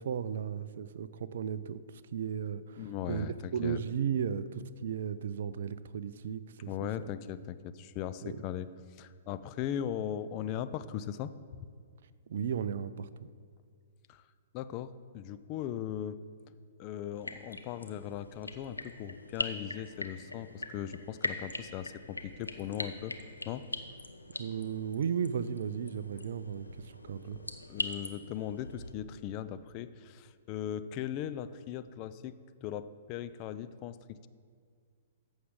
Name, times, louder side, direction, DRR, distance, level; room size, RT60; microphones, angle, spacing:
voice 1, 0.0-3.3 3.5-7.1 8.2-8.4 12.3-13.1 24.4-27.4, right 8 dB, 55° right, 15 dB, 0.4 m, -35 dB
voice 2, 2.8-3.8 6.7-11.3 14.1-14.2 14.5-16.2 16.8-23.1 23.5-23.7 27.2-27.3 27.7-34.3, left 10 dB, 30° left, 12 dB, 0.4 m, -39 dB
sound 1, 17.1-28.9, left 2 dB, 85° left, 0.7 m, -42 dB
14.0 x 7.1 x 3.7 m, 2.1 s
figure-of-eight pair, 115°, 0 cm